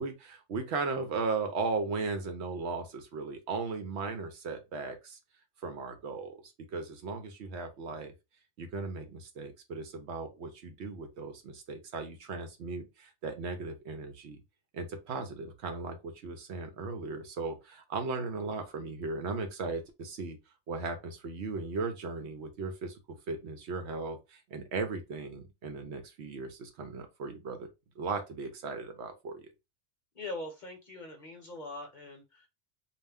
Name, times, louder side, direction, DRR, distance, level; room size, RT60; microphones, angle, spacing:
voice 1, 0.0-5.2 5.6-8.1 8.6-14.4 14.7-20.4 20.7-27.7 28.0-29.5, right 4 dB, 70° right, 0.8 m, -37 dB
voice 2, 30.1-32.5, left 2 dB, 45° left, 0.9 m, -42 dB
2.4 x 2.1 x 3.3 m
omnidirectional pair, 1.2 m